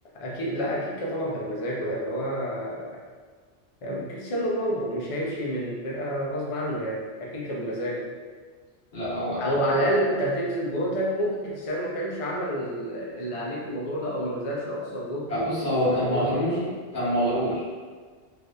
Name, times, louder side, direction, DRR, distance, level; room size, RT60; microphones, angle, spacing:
voice 1, 0.1-2.9 3.8-8.1 9.4-15.5 15.8-16.8, equal, 45° left, -4 dB, 0.4 m, -29 dB
voice 2, 8.9-9.8 15.3-16.6 16.9-17.6, equal, 75° left, -10 dB, 1.5 m, -26 dB
3.4 x 2.6 x 2.2 m, 1.5 s
omnidirectional pair, 1.2 m